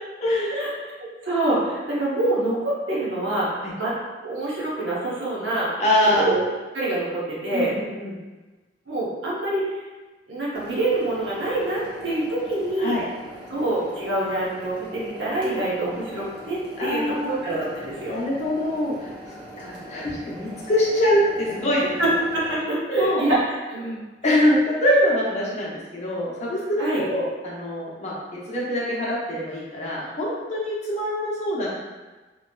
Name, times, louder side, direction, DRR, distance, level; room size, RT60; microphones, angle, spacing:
voice 1, 0.2-0.6 3.6-3.7 5.8-6.3 7.5-8.2 12.8-13.0 16.8-17.4 18.1-22.1 22.9-23.2 24.2-31.7, left 1 dB, 40° left, -5 dB, 0.7 m, -24 dB
voice 2, 1.0-3.9 4.2-5.7 6.2-6.4 6.7-7.7 8.9-9.6 10.3-13.0 13.5-18.1 22.0-24.0 26.8-27.0, right 2 dB, 90° right, -6 dB, 0.7 m, -26 dB
Forge - Coal burning with fan on short, 10.5-22.5, equal, 30° right, 0.7 m, -41 dB
3.0 x 2.6 x 2.2 m, 1.2 s
head